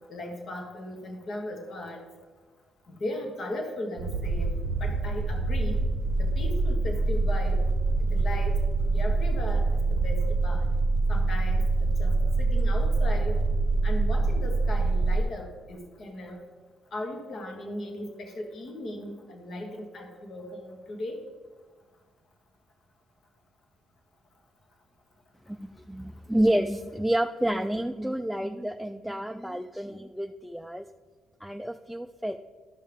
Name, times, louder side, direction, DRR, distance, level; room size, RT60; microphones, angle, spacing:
voice 1, 0.1-2.0 2.9-5.8 6.2-7.7 8.0-8.5 8.9-10.7 11.1-13.4 13.8-16.4 16.9-21.2, left 1 dB, 55° left, 2 dB, 1.6 m, -37 dB
sound 1, 4.0-15.2, right 3 dB, 80° right, 0.6 m, -25 dB
voice 2, 25.5-30.9 31.4-32.4, right 1 dB, ahead, 5 dB, 0.3 m, -29 dB
12.5 x 5.5 x 3.5 m, 1.4 s
cardioid pair, 90°, 0 cm